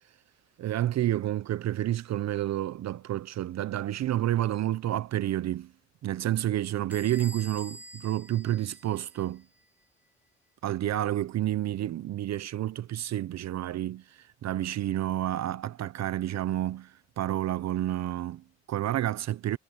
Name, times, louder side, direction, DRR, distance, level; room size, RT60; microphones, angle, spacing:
voice 1, 0.6-5.7 6.0-9.4 10.6-19.6, right 13 dB, 60° right, 0.7 m, -30 dB
Bell / Door, 6.9-9.4, right 1 dB, 5° right, 1.0 m, -47 dB
cardioid pair, 90°, 30 cm